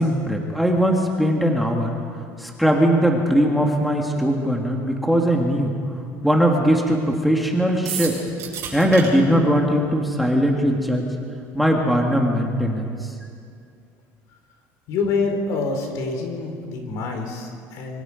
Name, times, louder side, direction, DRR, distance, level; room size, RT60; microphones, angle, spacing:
voice 1, 0.0-1.9 2.4-5.7 6.2-8.2 8.7-11.1 11.5-13.1, equal, ahead, 0 dB, 1.7 m, -20 dB
sound 1, 7.8-9.1, right 8 dB, 50° right, 7.7 m, -30 dB
voice 2, 14.9-18.0, left 4 dB, 65° left, 3 dB, 4.3 m, -26 dB
26.0 x 24.5 x 5.1 m, 2.3 s
cardioid pair, 165°, 6 cm